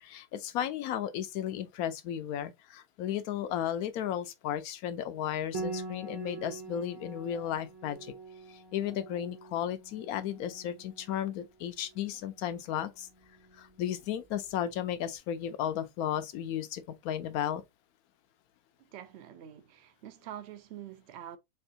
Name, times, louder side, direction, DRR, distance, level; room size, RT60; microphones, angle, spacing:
voice 1, 0.0-8.1 8.7-13.1 13.6-17.6, left 10 dB, 80° left, 1.1 m, -34 dB
Piano, 5.5-14.9, right 3 dB, 25° right, 0.7 m, -45 dB
voice 2, 18.8-21.4, right 10 dB, 65° right, 0.7 m, -46 dB
4.4 x 2.4 x 2.7 m
omnidirectional pair, 1.5 m